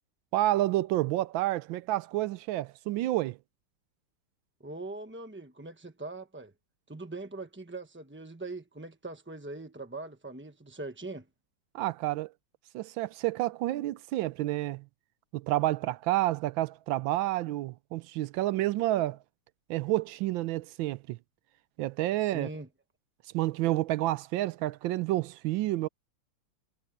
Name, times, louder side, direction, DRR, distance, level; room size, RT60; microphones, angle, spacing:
voice 1, 0.3-3.4 11.7-12.3 12.7-14.8 15.3-19.2 19.7-21.2 21.8-22.5 23.3-25.9, right 16 dB, 75° right, 1.3 m, -29 dB
voice 2, 4.6-6.5 6.9-11.3 22.2-22.7, right 2 dB, 15° right, 0.3 m, -41 dB
omnidirectional pair, 2.2 m